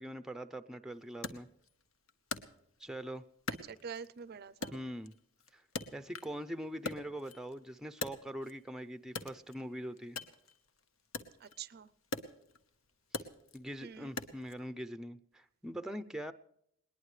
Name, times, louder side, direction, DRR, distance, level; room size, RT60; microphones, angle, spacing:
voice 1, 0.0-1.5 2.8-3.2 4.7-5.1 5.5-5.6 5.9-10.2 13.5-16.3, equal, 5° right, 11 dB, 0.6 m, -42 dB
Wood, 1.2-3.0 3.5-4.2 4.6-6.4 6.7-8.7 9.1-14.6, left 3 dB, 75° left, 1.2 m, -43 dB
voice 2, 3.6-4.8 11.4-11.9 13.8-14.1, right 6 dB, 50° right, 18 dB, 0.5 m, -46 dB
20.5 x 19.5 x 3.2 m, 0.74 s
head